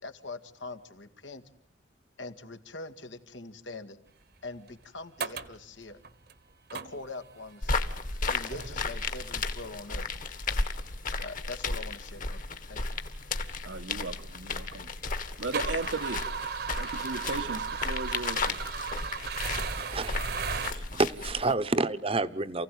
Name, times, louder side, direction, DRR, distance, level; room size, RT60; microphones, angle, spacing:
voice 1, 0.0-1.4 2.2-4.0 4.4-6.0 6.7-7.8 8.3-10.1 11.2-12.8, left 3 dB, 85° left, 2.1 m, -43 dB
sound 1, 4.7-4.8 5.2-5.6 6.0-6.3 6.7-7.3 7.8-8.1 8.5-9.2 10.1-10.2 11.1-11.2 11.6-11.7 12.4-12.5 12.7-14.6 15.0-20.7, right 6 dB, 55° right, 1.3 m, -36 dB
sound 2, 7.6-21.5, left 3 dB, 45° left, 1.6 m, -34 dB
voice 2, 13.6-14.9 15.4-16.3 16.8-18.7, right 3 dB, 85° right, 1.5 m, -36 dB
voice 3, 19.8-20.2 20.7-22.6, right 3 dB, 30° right, 0.9 m, -29 dB
29.0 x 16.0 x 9.3 m
head